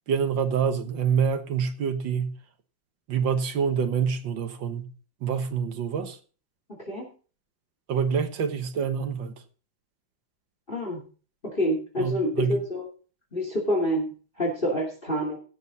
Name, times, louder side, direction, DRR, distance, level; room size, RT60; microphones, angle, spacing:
voice 1, 0.1-2.3 3.1-4.9 5.2-6.2 7.9-9.3 12.0-12.6, right 6 dB, 65° right, 2.0 m, -26 dB
voice 2, 10.7-11.0 11.5-12.9 13.3-14.0 14.4-15.4, equal, 25° left, 2.8 m, -27 dB
16.5 x 6.6 x 4.0 m
omnidirectional pair, 2.2 m